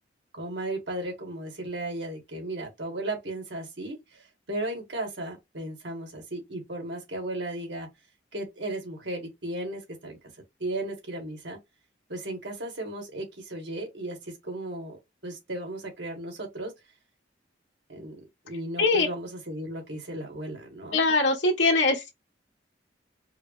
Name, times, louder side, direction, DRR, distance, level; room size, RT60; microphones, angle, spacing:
voice 1, 0.3-7.9 8.3-10.2 10.6-11.6 12.1-16.7 17.9-21.0, right 1 dB, 75° right, 1.8 m, -35 dB
voice 2, 20.9-22.1, left 3 dB, 80° left, 1.4 m, -22 dB
4.8 x 2.0 x 3.2 m
head